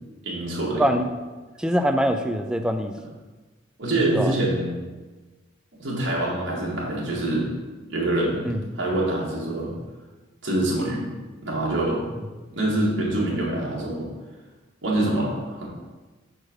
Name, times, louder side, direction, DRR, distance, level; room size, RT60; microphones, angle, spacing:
voice 1, 0.2-0.9 3.8-4.8 5.8-7.5 7.9-8.5 8.7-9.7 10.4-11.0 11.4-12.0 12.5-14.1 14.8-15.7, right 1 dB, 65° right, -5 dB, 1.9 m, -25 dB
voice 2, 0.8-1.1 1.6-2.9 4.1-4.3 8.4-8.6, equal, 5° right, 6 dB, 0.4 m, -23 dB
4.9 x 4.5 x 6.0 m, 1.2 s
head